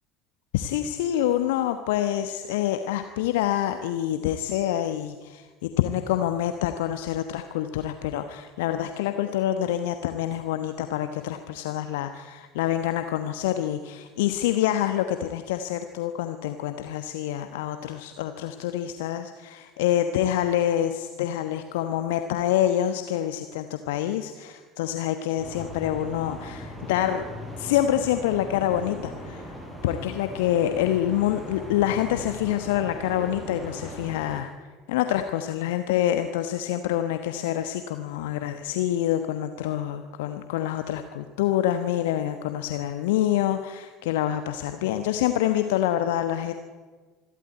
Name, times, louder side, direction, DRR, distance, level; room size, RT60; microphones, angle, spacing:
voice 1, 0.5-27.2 27.6-29.5 29.8-34.5 34.9-46.5, left 12 dB, 65° left, 8 dB, 1.1 m, -26 dB
sound 1, 25.4-34.4, equal, 5° right, 5.9 m, -39 dB
25.5 x 12.5 x 9.5 m, 1.4 s
figure-of-eight pair, 65°, 0 cm